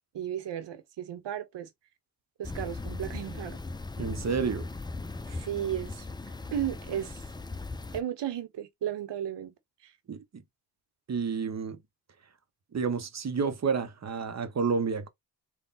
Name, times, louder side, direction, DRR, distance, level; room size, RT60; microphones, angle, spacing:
voice 1, 0.1-1.7 2.4-3.6 5.3-7.2 7.9-9.5 9.8-9.9, right 10 dB, 80° right, 0.9 m, -35 dB
sound 1, 2.4-8.0, left 3 dB, 10° left, 0.4 m, -38 dB
voice 2, 4.0-4.6 10.1-10.4 11.1-11.8 12.7-15.1, right 5 dB, 40° right, 0.8 m, -30 dB
3.4 x 2.3 x 4.0 m
cardioid pair, 70°, 41 cm